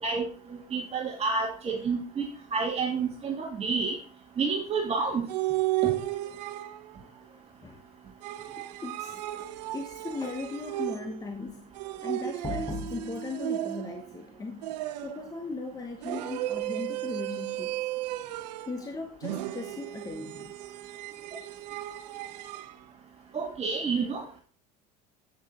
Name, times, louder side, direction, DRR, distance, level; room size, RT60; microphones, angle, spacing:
voice 1, 0.0-2.3 2.5-3.9 4.4-5.2 5.8-5.9 23.3-24.4, right 4 dB, 30° right, 0 dB, 2.0 m, -29 dB
sound 1, 5.3-7.0 8.2-11.3 11.7-14.1 14.6-15.3 16.0-18.8 19.2-22.7, right 15 dB, 90° right, 0.8 m, -34 dB
voice 2, 7.0-7.8 8.5-14.7 15.0-17.8 18.6-20.6, left 3 dB, 15° left, 4 dB, 1.2 m, -38 dB
8.5 x 6.9 x 4.4 m, 0.39 s
supercardioid pair, 110°, 21 cm